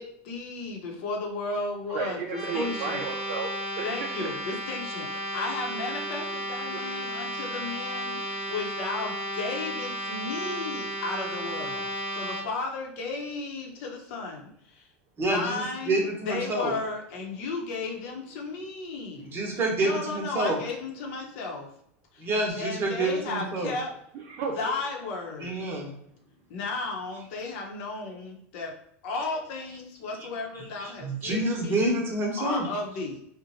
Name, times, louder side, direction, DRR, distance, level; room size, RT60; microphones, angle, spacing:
voice 1, 0.0-3.0 3.8-11.9 12.1-14.9 15.2-19.3 19.8-21.7 22.1-22.3 22.6-23.9 24.6-25.5 26.5-28.7 29.0-31.9 32.4-33.2, left 3 dB, 65° left, 1 dB, 0.7 m, -34 dB
voice 2, 1.9-4.3 5.3-5.4 6.7-7.0 24.1-24.6, right 5 dB, 50° right, 0 dB, 0.4 m, -34 dB
sound 1, 2.3-12.4, right 1 dB, 5° right, 1.0 m, -33 dB
voice 3, 15.2-16.7 19.2-20.6 22.2-23.7 25.4-25.9 30.6-32.7, right 2 dB, 35° right, 0 dB, 0.9 m, -28 dB
2.6 x 2.1 x 2.8 m, 0.70 s
hypercardioid pair, 105°, 7 cm